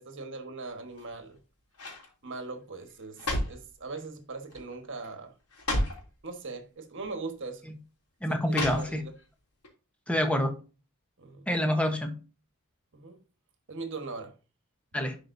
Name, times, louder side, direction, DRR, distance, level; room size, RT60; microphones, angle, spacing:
voice 1, 0.0-1.4 2.2-5.3 6.2-7.6 8.3-9.1 11.2-11.5 12.9-13.2 13.7-14.3, right 3 dB, 60° right, 1.4 m, -40 dB
sound 1, 0.9-1.3 1.7-2.1 2.9-3.7 4.5-4.8 5.0-5.1 5.5-6.1 7.0-7.1 8.5-9.2 9.6-9.7, left 1 dB, 80° left, 3.0 m, -32 dB
voice 2, 8.2-9.0 10.1-10.5 11.5-12.1 14.9-15.2, left 1 dB, 5° left, 1.0 m, -27 dB
11.0 x 4.9 x 2.6 m
head